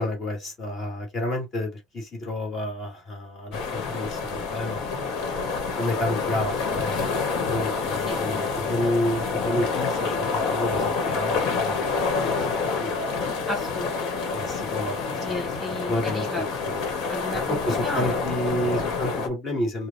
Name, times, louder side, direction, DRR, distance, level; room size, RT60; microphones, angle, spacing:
voice 1, 0.0-4.8 5.8-7.2 7.5-13.5 14.1-16.8 17.5-19.9, left 1 dB, 30° left, 2.3 m, -30 dB
sound 1, 3.5-19.3, left 4 dB, 60° left, 1.6 m, -27 dB
voice 2, 13.5-14.2 14.6-14.7 15.2-16.5 17.1-18.1, left 1 dB, ahead, 2.1 m, -34 dB
5.0 x 2.4 x 2.7 m
cardioid pair, 170°, 0 cm